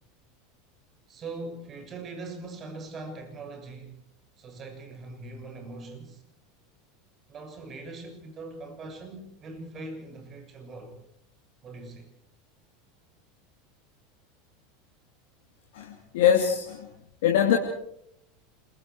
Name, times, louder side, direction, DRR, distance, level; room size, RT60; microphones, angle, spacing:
voice 1, 1.1-4.0 4.4-6.2 7.3-10.9 11.6-12.1, right 3 dB, 35° right, 5 dB, 7.1 m, -41 dB
voice 2, 15.7-16.9 17.2-17.6, left 9 dB, 70° left, 1 dB, 2.7 m, -23 dB
28.5 x 22.5 x 4.7 m, 0.72 s
hypercardioid pair, 85°, 0 cm